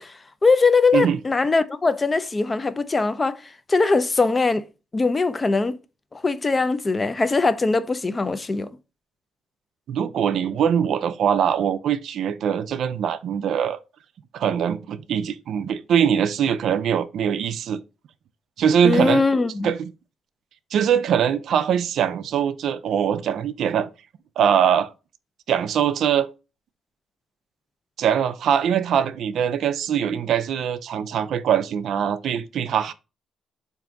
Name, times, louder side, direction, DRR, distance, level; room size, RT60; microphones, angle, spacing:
voice 1, 0.0-4.6 4.9-5.8 6.1-8.7 18.8-19.7, left 3 dB, 25° left, 0.3 m, -21 dB
voice 2, 9.9-13.8 14.3-17.8 18.6-19.2 19.6-19.9 20.7-23.9 24.4-24.9 25.5-26.3 28.0-32.9, right 8 dB, 70° right, 0.3 m, -22 dB
3.8 x 2.6 x 3.3 m
cardioid pair, 90°, 0 cm